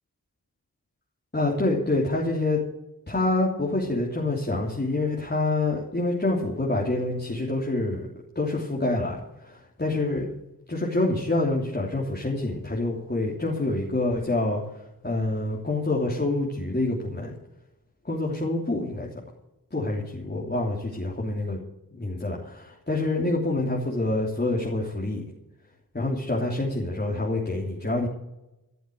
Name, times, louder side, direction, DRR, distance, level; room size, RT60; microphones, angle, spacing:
voice 1, 1.3-2.6 3.1-8.1 8.3-10.3 10.7-17.3 18.0-19.1 19.7-21.6 21.9-25.2 25.9-28.1, left 2 dB, 25° left, -3 dB, 3.2 m, -27 dB
15.0 x 7.1 x 9.3 m, 0.94 s
cardioid pair, 45°, 36 cm